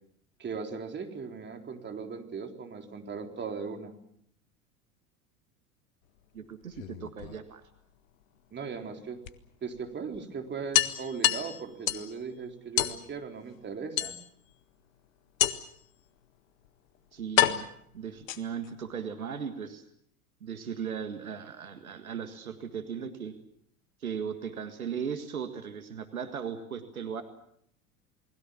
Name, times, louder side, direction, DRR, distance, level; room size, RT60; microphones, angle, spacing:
voice 1, 0.4-3.9 8.5-9.2 9.6-14.1, right 5 dB, 25° right, 4 dB, 3.9 m, -38 dB
voice 2, 6.3-7.6 17.1-17.7 17.9-19.8 20.4-23.4 24.0-27.2, right 7 dB, 75° right, 9 dB, 1.9 m, -37 dB
sound 1, 6.6-7.8 9.2-9.3 9.7-9.8 10.1-10.2 10.7-12.1 12.8-13.0 14.0-14.5 15.4-15.8 16.6-16.7 17.4-18.7, left 12 dB, 65° left, 1.6 m, -28 dB
29.0 x 20.5 x 7.2 m, 0.69 s
figure-of-eight pair, 75°, 43 cm